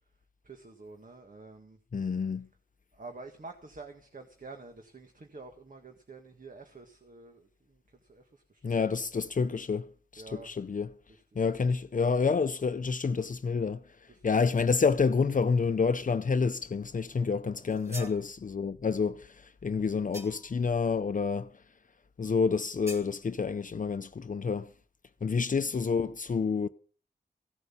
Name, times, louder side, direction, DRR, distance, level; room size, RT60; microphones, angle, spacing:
voice 1, 0.4-1.8 2.9-7.5 8.1-8.8 10.2-10.5 14.1-14.6 15.3-15.4 17.9-18.1 25.2-25.5, right 3 dB, 55° right, 1.8 m, -48 dB
voice 2, 1.9-2.5 8.6-9.9 10.1-10.9 11.4-13.8 14.2-19.4 19.6-21.5 22.2-24.7 25.2-26.7, left 5 dB, 50° left, 0.7 m, -28 dB
sound 1, 17.6-18.2 20.1-20.6 22.9-23.1, equal, 15° right, 2.3 m, -44 dB
16.5 x 7.9 x 7.2 m
wide cardioid pair, 80°, 17 cm